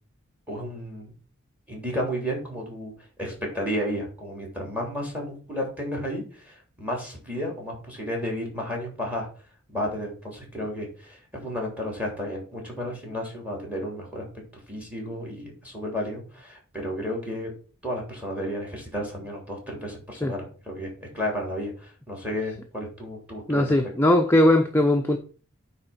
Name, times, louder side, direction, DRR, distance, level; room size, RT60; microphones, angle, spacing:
voice 1, 0.5-1.1 1.7-2.9 3.2-9.3 9.7-14.2 14.7-17.5 17.8-23.7, equal, 5° right, 3.3 m, -32 dB
voice 2, 23.5-25.2, left 1 dB, 10° left, 0.7 m, -19 dB
9.5 x 3.8 x 5.9 m
head